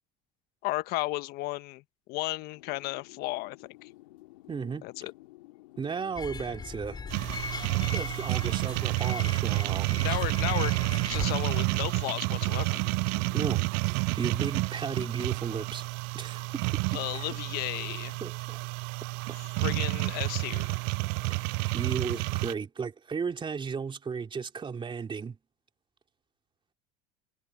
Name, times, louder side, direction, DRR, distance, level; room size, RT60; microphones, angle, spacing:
voice 1, 0.6-1.8 2.1-3.9 4.8-5.1 10.0-10.7 11.1-12.8 16.9-18.2 19.6-20.8, left 19 dB, 65° left, 1.3 m, -34 dB
sound 1, 2.5-13.7, left 20 dB, 85° left, 2.9 m, -52 dB
voice 2, 4.5-4.9 5.8-7.0 7.9-10.2 13.3-13.7 14.1-15.8 16.1-17.2 18.2-18.6 19.3-19.4 21.3-25.4, right 6 dB, 30° right, 3.0 m, -35 dB
sound 2, 6.2-11.3, left 4 dB, 25° left, 4.4 m, -39 dB
sound 3, 7.1-22.5, right 30 dB, 70° right, 0.4 m, -30 dB
supercardioid pair, 85°, 17 cm